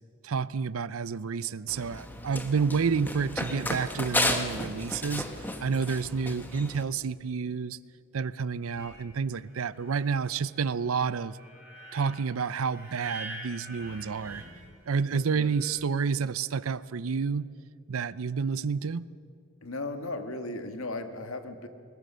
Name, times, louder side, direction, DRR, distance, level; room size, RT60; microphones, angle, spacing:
voice 1, 0.2-5.3 5.6-7.8 8.1-11.4 11.9-14.4 14.9-17.5 17.9-19.0, right 5 dB, 80° right, 18 dB, 0.5 m, -29 dB
Run, 1.7-6.8, left 1 dB, 10° left, 1.2 m, -33 dB
sound 1, 8.7-15.7, right 1 dB, 10° right, 8.0 m, -47 dB
voice 2, 15.1-15.5 19.6-21.7, left 2 dB, 80° left, 7 dB, 1.6 m, -36 dB
21.0 x 20.5 x 6.8 m, 2.2 s
head